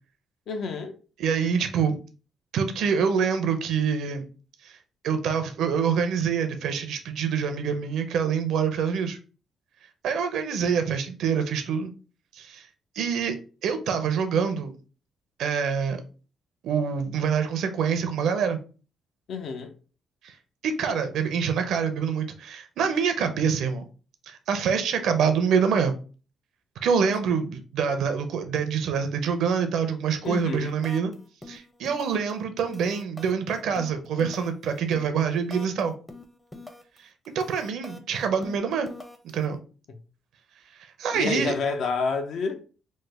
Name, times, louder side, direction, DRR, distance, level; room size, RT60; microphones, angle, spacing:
voice 1, 0.5-1.0 19.3-19.7 30.2-30.7 41.1-42.6, left 4 dB, 70° left, 0.5 m, -29 dB
voice 2, 1.2-2.0 2.5-4.2 4.6-4.8 5.0-9.2 10.0-11.9 12.3-12.7 13.0-13.4 13.6-14.7 15.4-16.0 16.6-18.6 20.2-20.3 20.6-23.8 24.3-25.9 26.8-31.1 31.5-35.9 37.3-38.9 39.3-39.6 41.0-41.5, right 6 dB, 80° right, 0.5 m, -25 dB
sound 1, 30.2-30.5 30.8-31.1 31.4-32.3 32.6-35.8 36.1-37.0 37.2-39.4, left 2 dB, 10° left, 0.5 m, -44 dB
3.1 x 2.1 x 3.3 m
cardioid pair, 90°, 0 cm